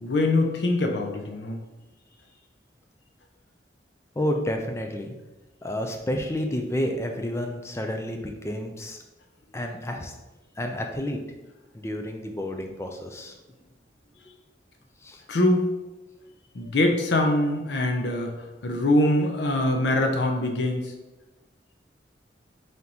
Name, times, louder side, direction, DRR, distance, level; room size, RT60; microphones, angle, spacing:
voice 1, 0.0-1.6 15.3-15.7 16.5-18.3 18.6-20.9, left 1 dB, 80° left, 3 dB, 0.6 m, -23 dB
voice 2, 4.2-5.1 5.6-8.2 8.4-9.0 9.5-10.1 10.6-11.2 11.7-13.3 15.0-15.2, equal, 15° left, 3 dB, 0.4 m, -30 dB
3.9 x 3.4 x 2.8 m, 1.1 s
head